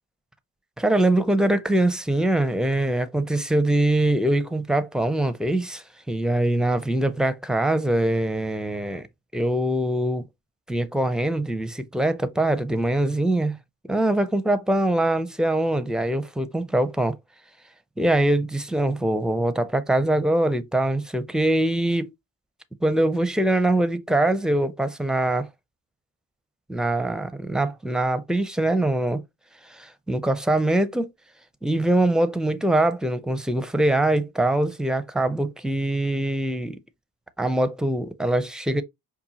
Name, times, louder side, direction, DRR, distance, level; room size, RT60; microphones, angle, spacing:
voice 1, 0.8-9.1 9.3-10.2 10.7-13.6 13.9-17.2 18.0-22.1 22.8-25.5 26.7-29.2 29.7-31.1 31.6-36.8 37.4-38.8, right 1 dB, ahead, 0.6 m, -23 dB
5.4 x 2.3 x 2.8 m
supercardioid pair, 60°, 44 cm